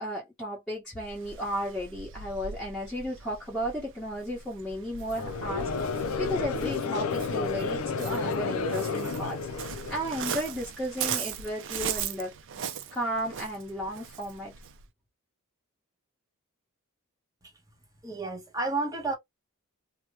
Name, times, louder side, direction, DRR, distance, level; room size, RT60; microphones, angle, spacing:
voice 1, 0.0-5.7 6.2-9.4 9.9-12.3 12.9-14.5, equal, ahead, 1.2 m, -34 dB
Waves surf, 1.0-14.9, right 8 dB, 60° right, 0.5 m, -39 dB
Conversation / Crowd, 5.1-10.4, left 4 dB, 70° left, 0.5 m, -31 dB
voice 2, 18.0-19.2, right 3 dB, 15° right, 1.1 m, -31 dB
2.9 x 2.1 x 3.2 m
head